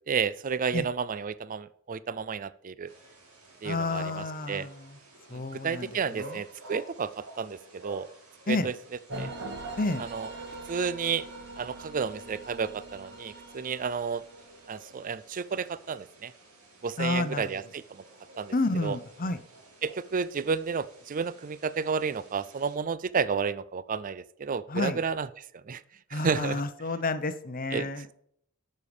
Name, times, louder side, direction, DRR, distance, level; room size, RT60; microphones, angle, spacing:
voice 1, 0.1-2.9 3.6-4.1 4.5-4.7 5.3-8.1 8.5-8.7 9.2-9.3 10.1-10.3 10.7-11.3 11.6-14.2 14.7-16.3 16.8-18.0 18.4-18.5 18.8-19.0 19.8-25.3 25.7-25.8 26.1-26.6 27.7-27.9, right 6 dB, 35° right, 17 dB, 0.4 m, -31 dB
sound 1, 2.9-22.8, right 1 dB, 80° right, 3.5 m, -52 dB
voice 2, 3.6-5.0 5.3-6.4 8.5-8.7 9.8-10.0 17.0-17.5 18.5-19.4 24.7-25.0 26.1-28.2, left 2 dB, 40° left, 11 dB, 0.8 m, -30 dB
sound 2, 9.1-15.1, right 2 dB, 55° right, 2.3 m, -42 dB
11.0 x 6.6 x 7.0 m, 0.68 s
head